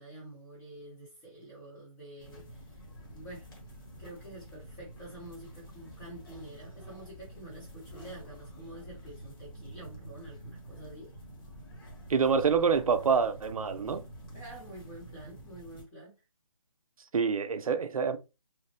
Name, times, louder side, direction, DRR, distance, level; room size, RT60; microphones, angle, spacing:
voice 1, 0.0-3.5 4.0-11.1 14.3-16.2, right 1 dB, 15° left, 0.7 m, -48 dB
sound 1, 2.2-15.8, right 1 dB, 40° left, 1.1 m, -48 dB
voice 2, 12.1-14.0 17.1-18.2, right 6 dB, 80° right, 0.5 m, -26 dB
3.1 x 2.0 x 2.8 m
hypercardioid pair, 160°, 18 cm